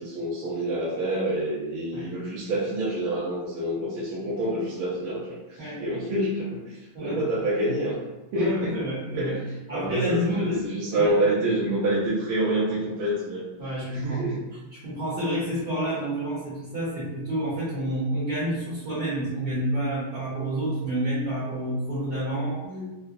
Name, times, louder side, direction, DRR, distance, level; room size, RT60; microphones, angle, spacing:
voice 1, 0.0-8.0 8.3-8.7 9.2-9.4 9.7-13.4 13.9-14.4 22.6-23.0, right 1 dB, 75° right, -7 dB, 1.5 m, -27 dB
voice 2, 8.3-9.4 9.7-10.7 11.0-11.1 13.6-14.2 14.7-22.6, right 1 dB, 55° right, -9 dB, 1.4 m, -29 dB
3.8 x 2.2 x 2.5 m, 1.1 s
omnidirectional pair, 2.4 m